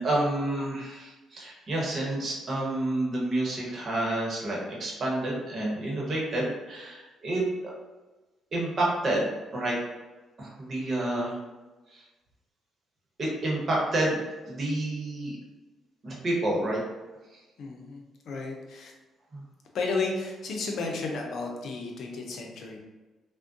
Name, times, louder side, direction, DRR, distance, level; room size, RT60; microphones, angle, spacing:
voice 1, 0.0-7.7 8.5-9.8 10.4-11.4 11.9-12.0 13.2-14.2 14.5-15.4 16.0-16.8 17.3-17.4 19.3-19.4, right 1 dB, 45° right, -3 dB, 1.0 m, -29 dB
voice 2, 17.6-18.9 19.7-22.8, left 3 dB, 70° left, 0 dB, 0.6 m, -33 dB
3.5 x 2.2 x 2.5 m, 1.2 s
cardioid pair, 90°, 0 cm